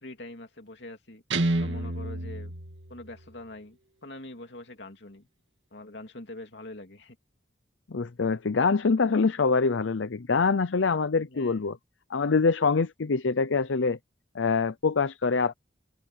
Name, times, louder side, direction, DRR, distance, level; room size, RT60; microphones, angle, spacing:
voice 1, 0.0-1.2 1.6-2.6 2.9-5.3 5.7-7.2 11.2-11.8, left 2 dB, 60° left, 3.0 m, -44 dB
Guitar, 1.3-3.4, right 2 dB, 75° right, 2.2 m, -30 dB
voice 2, 7.9-11.8 12.1-14.0 14.3-15.5, left 4 dB, 85° left, 0.6 m, -25 dB
head